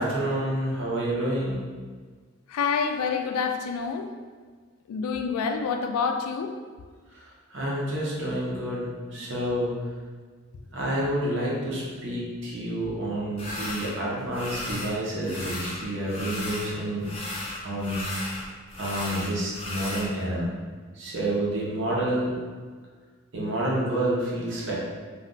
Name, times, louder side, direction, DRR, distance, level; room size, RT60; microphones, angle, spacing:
voice 1, 0.0-1.6 7.1-9.8 10.7-17.1 17.6-18.1 18.8-20.5 20.9-22.3 23.3-24.8, right 1 dB, 55° right, -5 dB, 0.7 m, -29 dB
voice 2, 2.5-4.1 4.9-6.5 12.8-13.0, left 5 dB, 85° left, 9 dB, 0.3 m, -27 dB
sound 1, 13.4-13.9 14.3-14.9 15.2-16.7 17.0-20.1, left 1 dB, 25° left, 0.5 m, -35 dB
2.4 x 2.2 x 3.7 m, 1.5 s
head